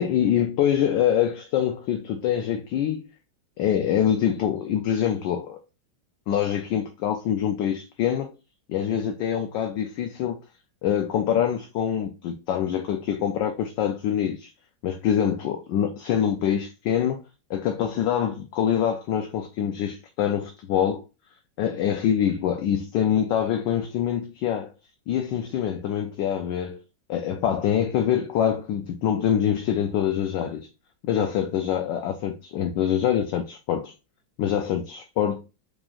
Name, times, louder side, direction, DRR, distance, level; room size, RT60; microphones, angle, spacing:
voice 1, 0.0-3.1 3.6-5.6 6.3-8.3 8.7-10.4 10.8-14.5 14.8-17.2 17.5-21.0 21.6-24.7 25.1-26.8 27.1-30.7 31.0-33.9 34.4-35.4, left 9 dB, 75° left, 1.2 m, -25 dB
5.0 x 3.7 x 2.4 m
omnidirectional pair, 2.1 m